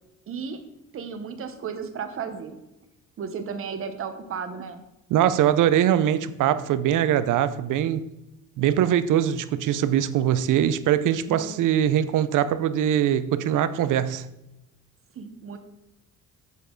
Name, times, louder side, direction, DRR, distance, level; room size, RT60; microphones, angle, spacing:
voice 1, 0.3-0.6 0.9-2.6 3.2-4.8 11.3-11.5 15.1-15.6, right 6 dB, 45° right, 0.9 m, -34 dB
voice 2, 5.1-8.1 8.6-14.3, right 10 dB, 75° right, 0.6 m, -22 dB
8.2 x 7.0 x 3.8 m
cardioid pair, 145°, 31 cm